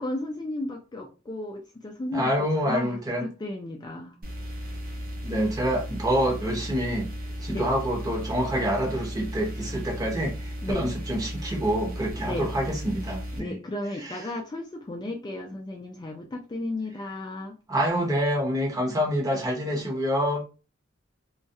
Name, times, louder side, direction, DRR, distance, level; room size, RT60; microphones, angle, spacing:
voice 1, 0.0-2.3 2.6-4.2 7.5-7.7 10.6-10.9 12.2-12.5 13.4-17.6, left 1 dB, 20° left, 0.4 m, -34 dB
voice 2, 2.1-3.3 5.2-7.1 7.4-13.5 17.7-20.4, equal, 20° right, 0.8 m, -27 dB
sound 1, 4.2-13.4, equal, 50° right, 0.6 m, -35 dB
2.3 x 2.1 x 2.6 m
head